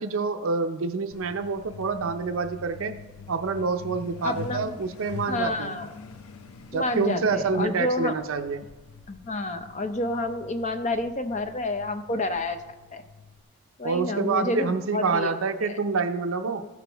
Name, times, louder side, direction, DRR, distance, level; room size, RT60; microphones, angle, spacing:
voice 1, 0.0-3.0 3.3-5.8 6.7-8.7 13.8-16.6, right 4 dB, 70° right, 8 dB, 0.5 m, -27 dB
Truck, 1.1-13.4, left 5 dB, 85° left, 0.6 m, -44 dB
voice 2, 4.2-4.8 5.3-5.9 6.7-8.1 9.1-12.6 12.9-13.0 13.8-15.3 16.6-16.7, left 2 dB, 30° left, 8 dB, 0.6 m, -29 dB
14.5 x 6.1 x 3.4 m, 1.2 s
head